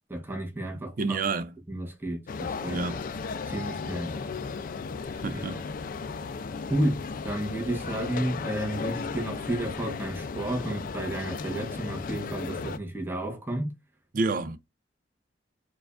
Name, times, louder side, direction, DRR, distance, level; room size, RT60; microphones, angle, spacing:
voice 1, 0.1-1.3 1.7-2.9 3.5-4.2 5.5-5.6 6.7-13.7, right 1 dB, 10° right, 0.9 m, -32 dB
voice 2, 1.0-1.5 2.7-3.0 5.2-5.6 14.1-14.6, right 3 dB, 50° right, 0.4 m, -29 dB
sound 1, 2.3-12.8, left 5 dB, 50° left, 0.3 m, -35 dB
4.7 x 2.3 x 2.4 m
head